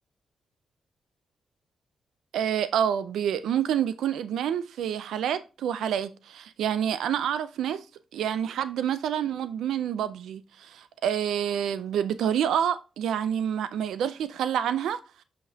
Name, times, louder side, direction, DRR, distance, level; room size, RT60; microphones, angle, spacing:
voice 1, 2.3-7.8 8.1-15.0, right 9 dB, 85° right, 0.5 m, -28 dB
7.9 x 5.2 x 2.8 m
cardioid pair, 100°, 0 cm